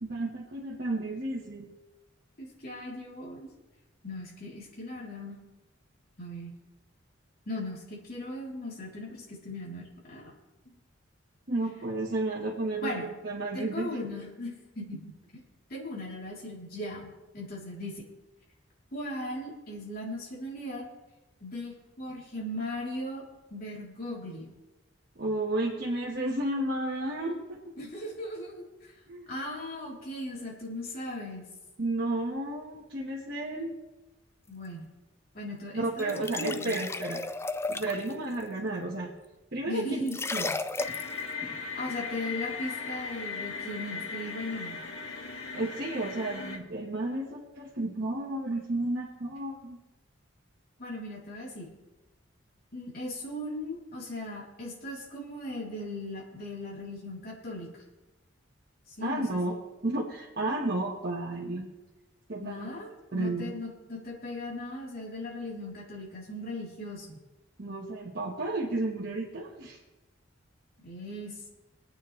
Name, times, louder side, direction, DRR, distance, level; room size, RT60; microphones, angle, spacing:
voice 1, 0.0-1.7 11.5-14.0 25.2-27.7 29.1-29.3 31.8-33.7 35.7-37.2 37.7-39.1 39.5-40.0 40.3-40.5 41.4-41.6 45.5-49.8 59.0-59.5 59.8-61.7 62.3-62.7 63.1-63.5 67.6-69.8, right 2 dB, 55° right, -5 dB, 1.5 m, -32 dB
voice 2, 2.4-3.5 4.0-5.4 6.2-6.5 7.4-10.3 10.6-10.8 12.8-13.1 13.5-15.4 15.7-18.0 18.9-20.9 21.4-23.2 23.5-24.5 27.8-28.9 29.3-31.5 34.5-34.9 35.3-36.8 39.7-40.2 41.7-44.8 50.8-51.7 52.7-57.8 58.9-59.4 62.4-67.2 70.8-71.5, left 1 dB, 50° left, -4 dB, 3.4 m, -38 dB
sound 1, 36.0-38.1 40.1-41.2, left 3 dB, 15° left, 0.3 m, -34 dB
sound 2, 40.8-46.6, left 5 dB, 85° left, 1.7 m, -38 dB
22.5 x 9.1 x 3.3 m, 1.1 s
head